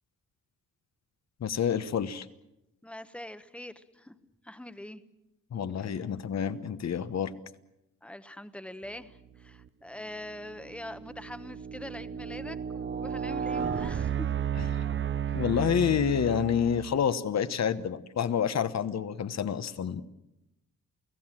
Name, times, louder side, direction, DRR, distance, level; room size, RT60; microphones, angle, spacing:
voice 1, 1.4-2.3 5.5-7.3 14.6-14.8 15.3-20.0, left 8 dB, 55° left, 13 dB, 1.2 m, -28 dB
voice 2, 2.8-4.1 4.4-5.0 5.6-6.0 8.0-14.3 15.2-15.4, left 1 dB, 5° left, 11 dB, 1.1 m, -43 dB
sound 1, 9.3-9.7 10.3-17.1, right 8 dB, 35° right, 0.7 m, -33 dB
29.0 x 17.0 x 7.5 m, 0.90 s
cardioid pair, 125°, 33 cm